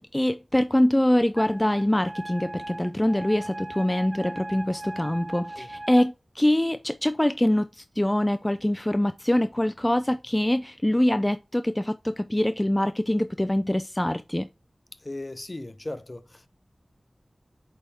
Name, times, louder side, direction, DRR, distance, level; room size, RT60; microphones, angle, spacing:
voice 1, 0.0-14.5, left 1 dB, 20° left, 0.4 m, -24 dB
Wind instrument woodwind instrument, 1.4-6.1, right 1 dB, 45° right, 0.8 m, -39 dB
voice 2, 15.0-16.5, left 2 dB, 40° left, 0.7 m, -37 dB
8.5 x 3.5 x 3.4 m
wide cardioid pair, 65°, 0 cm